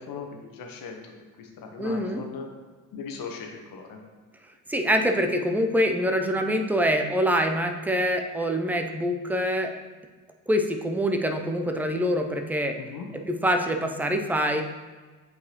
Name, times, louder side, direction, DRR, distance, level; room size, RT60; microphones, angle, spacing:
voice 1, 0.0-2.5 2.9-4.0 12.8-13.1, left 5 dB, 45° left, 2 dB, 1.3 m, -39 dB
voice 2, 1.8-2.2 4.7-9.7 10.5-12.8 13.3-14.6, equal, 5° right, 4 dB, 0.6 m, -25 dB
8.3 x 4.6 x 3.0 m, 1.3 s
figure-of-eight pair, 50°, 45 cm